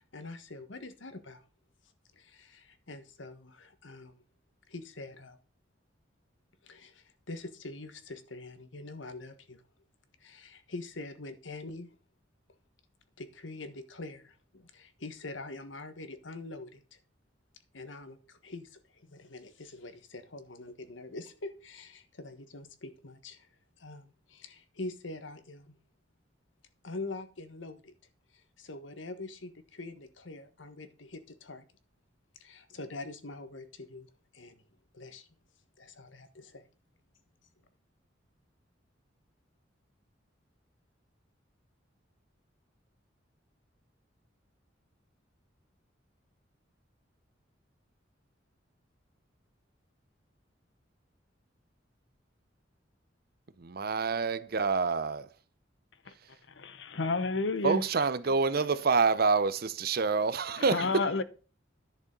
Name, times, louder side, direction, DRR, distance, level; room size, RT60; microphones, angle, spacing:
voice 1, 0.0-1.4 2.1-4.2 4.7-5.4 6.6-9.6 10.2-11.9 13.2-17.0 17.7-23.5 23.8-25.8 26.8-27.9 28.3-31.6 32.4-34.6 34.9-35.3 35.8-36.7, left 2 dB, 90° left, 1.4 m, -44 dB
voice 2, 53.6-55.3 57.6-61.0, right 4 dB, 55° right, 0.7 m, -27 dB
voice 3, 56.6-57.8 60.6-61.2, left 3 dB, 70° left, 0.9 m, -30 dB
10.5 x 6.9 x 3.8 m
head